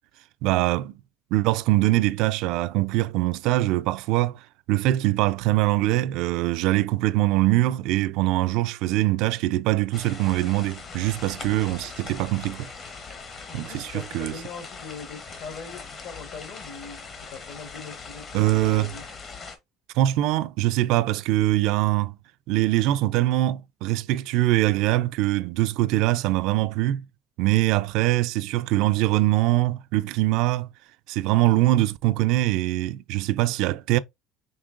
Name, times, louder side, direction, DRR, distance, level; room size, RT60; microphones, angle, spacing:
voice 1, 0.4-0.9 1.3-12.7 13.5-14.3 18.3-18.9 19.9-22.2 22.5-27.0 27.4-30.7 31.1-34.0, right 16 dB, 65° right, 0.3 m, -23 dB
sound 1, 9.9-19.6, left 4 dB, 30° left, 0.8 m, -41 dB
voice 2, 13.5-19.0, left 5 dB, 60° left, 1.3 m, -41 dB
5.3 x 3.1 x 2.5 m
cardioid pair, 150°, 0 cm